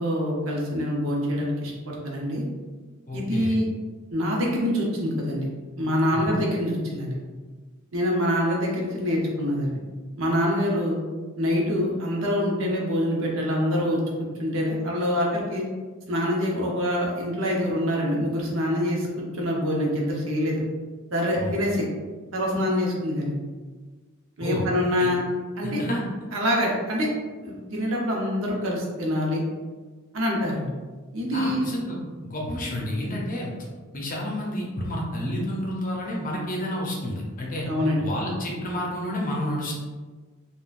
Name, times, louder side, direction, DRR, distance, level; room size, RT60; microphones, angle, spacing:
voice 1, 0.0-2.5 3.1-3.7 4.1-5.5 5.8-7.2 7.9-9.7 10.2-11.0 11.4-14.0 14.4-15.6 16.1-19.1 19.3-20.6 21.1-21.9 22.3-23.3 24.4-25.2 25.6-25.8 26.3-27.1 27.4-29.4 30.1-30.7 31.1-31.7 37.7-38.0, equal, 70° right, -2 dB, 0.7 m, -25 dB
voice 2, 3.1-3.6 6.1-6.3 21.4-21.6 24.4-24.7 25.0-25.1 25.6-26.0 31.3-33.5 33.9-37.7 38.0-39.8, left 1 dB, 40° left, -2 dB, 0.6 m, -30 dB
3.6 x 2.2 x 2.4 m, 1.4 s
head